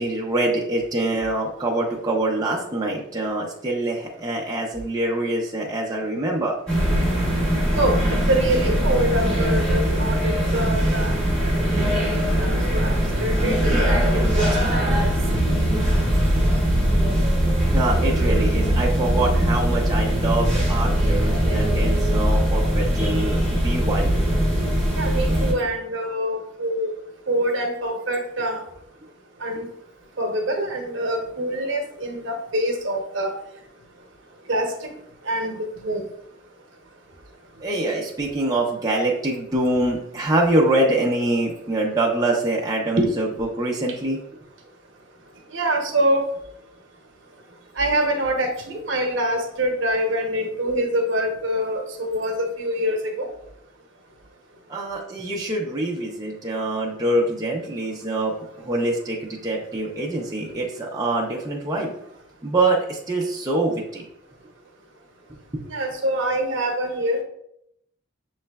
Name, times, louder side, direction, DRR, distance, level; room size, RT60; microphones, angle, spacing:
voice 1, 0.0-6.6 17.7-24.5 37.6-44.2 54.7-61.9 62.4-64.1 65.3-65.6, right 2 dB, 20° right, -2 dB, 0.5 m, -25 dB
sound 1, 6.7-25.5, equal, 5° left, 1.1 m, -21 dB
voice 2, 8.3-11.1 12.3-15.1 24.6-26.9 27.3-28.6 29.4-29.7 30.2-33.3 34.5-34.9 35.3-36.0 43.0-43.1 45.5-46.2 47.8-53.3 65.7-67.2, right 1 dB, 70° right, 3 dB, 0.8 m, -25 dB
6.5 x 3.1 x 2.2 m, 0.74 s
head